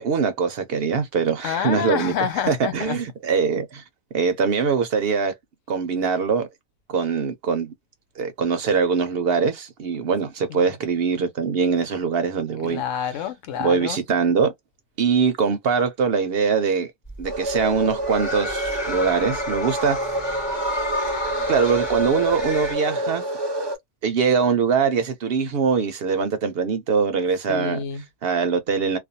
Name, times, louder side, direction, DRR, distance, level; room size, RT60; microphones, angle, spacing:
voice 1, 0.0-2.1 2.5-3.8 4.1-5.3 5.7-6.5 6.9-7.7 8.2-12.8 13.6-14.5 15.0-16.9 17.2-20.2 21.5-23.2 24.0-27.8 28.2-29.0, right 5 dB, 60° right, 0.7 m, -22 dB
voice 2, 1.4-3.0 10.5-10.6 12.6-14.0 27.5-28.0, left 8 dB, 80° left, 1.0 m, -28 dB
sound 1, 17.1-22.8, left 1 dB, 20° left, 1.1 m, -31 dB
sound 2, 17.2-23.8, right 1 dB, 40° right, 0.4 m, -28 dB
2.4 x 2.2 x 2.7 m
omnidirectional pair, 1.3 m